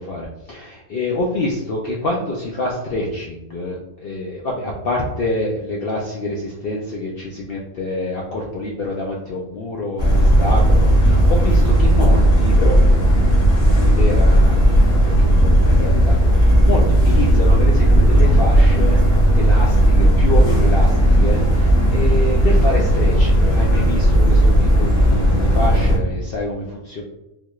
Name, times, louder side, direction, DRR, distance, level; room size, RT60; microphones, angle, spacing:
voice 1, 0.0-19.0 19.3-27.0, left 2 dB, 80° left, -2 dB, 0.5 m, -26 dB
sound 1, 10.0-26.0, right 1 dB, 45° left, 1.5 m, -14 dB
3.8 x 2.3 x 3.0 m, 0.93 s
omnidirectional pair, 1.5 m